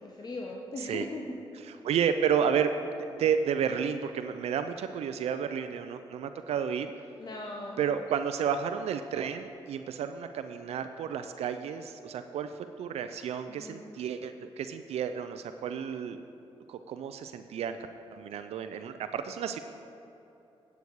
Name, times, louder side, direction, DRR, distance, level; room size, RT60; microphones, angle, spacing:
voice 1, 0.0-1.4 7.2-7.8 13.5-13.9, left 2 dB, 40° left, -1 dB, 1.0 m, -39 dB
voice 2, 1.6-2.7 3.2-6.9 7.8-16.2 16.7-17.8 18.1-19.6, right 7 dB, 80° right, 9 dB, 0.4 m, -31 dB
9.3 x 8.1 x 4.8 m, 2.8 s
cardioid pair, 70°, 11 cm